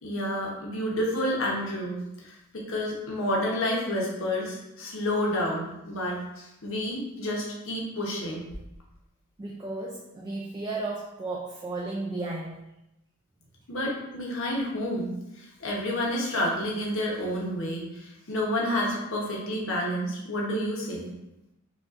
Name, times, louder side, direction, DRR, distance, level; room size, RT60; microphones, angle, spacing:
voice 1, 0.0-8.5 13.7-21.1, left 1 dB, 65° left, -2 dB, 0.9 m, -30 dB
voice 2, 9.4-12.6, right 2 dB, 20° right, -2 dB, 0.3 m, -34 dB
5.1 x 2.4 x 2.5 m, 0.90 s
head